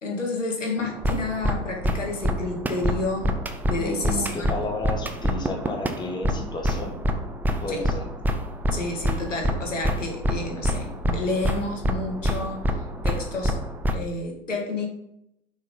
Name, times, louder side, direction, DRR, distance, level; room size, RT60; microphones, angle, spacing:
voice 1, 0.0-3.3 3.7-4.5 7.7-7.8 8.7-12.7 13.0-13.6 13.9-14.9, left 3 dB, 90° left, 1 dB, 2.1 m, -30 dB
sound 1, 0.8-13.9, equal, 5° right, 0.4 m, -27 dB
voice 2, 3.8-7.0 7.6-8.0, left 2 dB, 10° left, 1 dB, 1.3 m, -32 dB
6.3 x 6.0 x 3.9 m, 0.78 s
hypercardioid pair, 100°, 36 cm